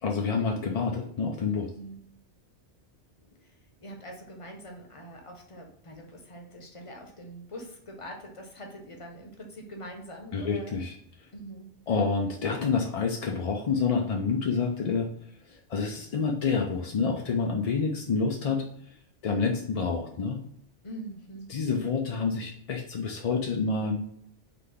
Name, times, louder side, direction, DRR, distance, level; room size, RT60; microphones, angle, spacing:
voice 1, 0.0-1.7 10.3-10.9 11.9-15.1 15.5-18.7 19.2-20.4 21.5-24.0, left 5 dB, 55° left, 1 dB, 0.4 m, -28 dB
voice 2, 3.8-10.8 11.3-11.7 20.8-21.5, right 1 dB, 30° left, 2 dB, 0.8 m, -43 dB
4.0 x 3.3 x 3.4 m, 0.67 s
omnidirectional pair, 1.2 m